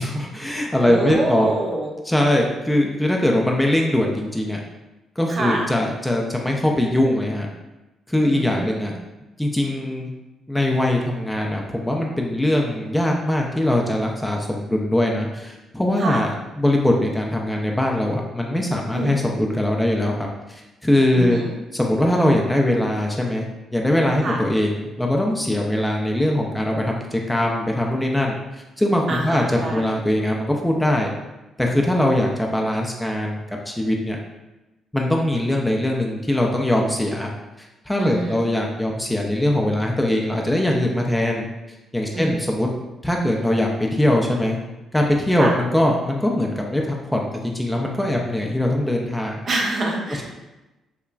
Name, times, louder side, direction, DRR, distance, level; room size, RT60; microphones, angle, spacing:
voice 1, 0.0-1.5 2.1-4.6 5.2-7.5 8.1-8.9 9.4-10.1 10.5-16.3 16.6-20.2 20.5-21.4 21.7-23.5 23.7-28.4 28.8-31.1 31.6-33.4 33.7-34.2 34.9-37.3 37.9-41.5 41.9-42.7 43.0-44.6 44.9-49.4, left 1 dB, 10° left, 0 dB, 0.3 m, -21 dB
voice 2, 0.8-1.9 5.3-5.6 8.2-8.8 16.0-16.2 18.9-19.1 21.1-21.5 24.2-24.4 29.1-30.0 38.0-38.4 42.1-42.4 45.4-45.5 49.5-50.2, right 2 dB, 50° right, -1 dB, 0.6 m, -26 dB
2.9 x 2.3 x 2.3 m, 1.0 s
cardioid pair, 90°, 0 cm